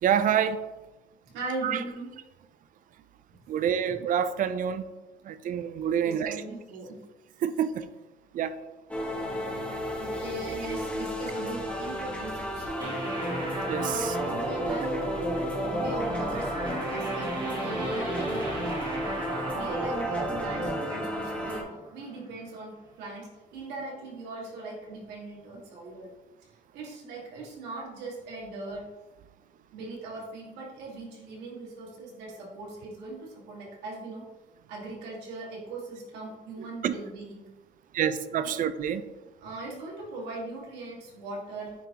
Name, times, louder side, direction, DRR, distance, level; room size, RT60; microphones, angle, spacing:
voice 1, 0.0-0.6 1.6-1.8 3.5-4.8 5.2-6.4 7.4-7.9 8.3-8.6 13.7-14.2 36.8-36.9 37.9-39.0, right 8 dB, 55° right, 13 dB, 0.5 m, -27 dB
voice 2, 1.2-2.1 5.4-5.6 6.0-7.0 10.0-13.0 14.2-14.9 15.6-18.3 19.5-26.1 26.7-28.9 29.7-34.3 34.7-37.5 38.4-38.6 39.4-41.7, right 2 dB, 90° right, -2 dB, 1.8 m, -40 dB
sound 1, 8.9-21.6, equal, 5° left, 1.3 m, -34 dB
sound 2, 12.8-22.1, right 2 dB, 25° right, 1.9 m, -33 dB
9.1 x 3.6 x 2.9 m, 1.1 s
cardioid pair, 110°, 17 cm